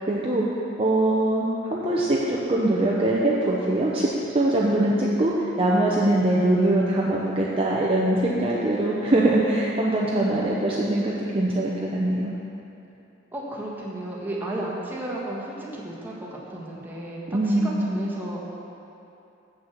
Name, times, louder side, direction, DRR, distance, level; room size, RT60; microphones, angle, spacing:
voice 1, 0.1-0.4 0.8-12.3 17.3-17.8, right 1 dB, 30° right, -5 dB, 0.7 m, -22 dB
voice 2, 13.3-18.5, right 1 dB, 10° right, -5 dB, 1.5 m, -33 dB
7.4 x 6.2 x 7.3 m, 2.8 s
head